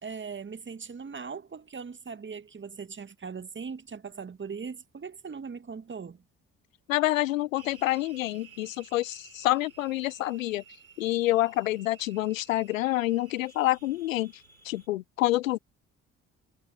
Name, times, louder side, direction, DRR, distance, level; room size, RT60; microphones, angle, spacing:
voice 1, 0.0-6.2, right 5 dB, 30° right, 1.8 m, -40 dB
voice 2, 6.9-10.6 11.0-14.3 14.6-15.6, left 16 dB, 75° left, 1.0 m, -27 dB
sound 1, 7.5-14.9, right 7 dB, 85° right, 4.1 m, -54 dB
figure-of-eight pair, 45°, 40 cm